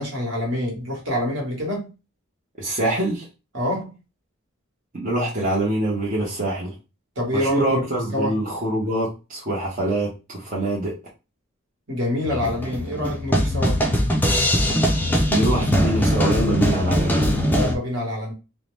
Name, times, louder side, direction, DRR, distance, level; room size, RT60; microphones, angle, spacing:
voice 1, 0.0-1.9 3.5-3.9 7.2-7.8 8.1-8.4 11.9-13.8 17.4-18.3, left 1 dB, 60° right, 1.2 m, -26 dB
voice 2, 2.6-3.3 4.9-6.7 7.3-10.9 15.3-17.3, right 1 dB, 40° right, 0.8 m, -24 dB
sound 1, 12.3-17.7, equal, 10° left, 0.4 m, -21 dB
2.7 x 2.1 x 3.1 m
head